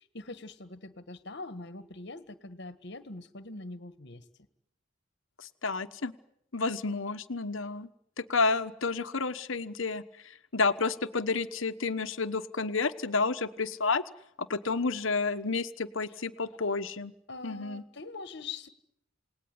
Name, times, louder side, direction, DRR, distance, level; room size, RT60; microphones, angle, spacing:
voice 1, 0.0-4.2 16.4-16.5 17.3-18.7, left 3 dB, 55° left, 12 dB, 1.7 m, -43 dB
voice 2, 5.4-6.1 6.5-7.9 8.2-14.0 14.4-17.1 17.4-17.8, left 4 dB, 70° left, 9 dB, 1.2 m, -30 dB
28.5 x 19.0 x 9.6 m, 0.77 s
head